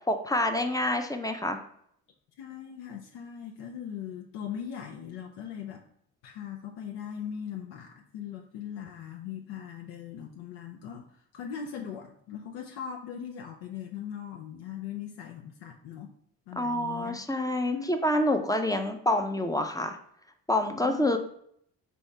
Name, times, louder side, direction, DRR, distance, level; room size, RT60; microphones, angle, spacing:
voice 1, 0.1-1.6 16.6-20.0 20.5-21.2, left 1 dB, 10° left, 6 dB, 0.5 m, -27 dB
voice 2, 2.4-5.8 6.2-16.1 16.5-17.2 17.7-17.9 20.8-21.2, left 8 dB, 80° left, 2 dB, 0.5 m, -40 dB
4.3 x 2.7 x 3.2 m, 0.67 s
supercardioid pair, 60°, 40 cm